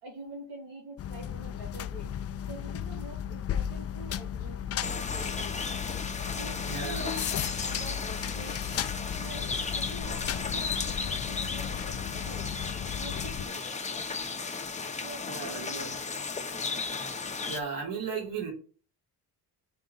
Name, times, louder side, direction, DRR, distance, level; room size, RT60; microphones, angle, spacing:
voice 1, 0.0-2.1 2.5-5.6 6.3-8.6 9.1-12.5 13.0-13.7 15.0-16.4, right 2 dB, 70° right, -3 dB, 2.8 m, -46 dB
sound 1, 1.0-13.5, left 9 dB, 40° left, 0.4 m, -35 dB
sound 2, 4.8-17.6, left 4 dB, 15° left, 0.8 m, -35 dB
voice 2, 6.6-7.0 15.2-16.1 17.5-18.5, right 5 dB, 55° right, -2 dB, 3.1 m, -36 dB
5.2 x 3.8 x 5.4 m, 0.37 s
cardioid pair, 120°, 41 cm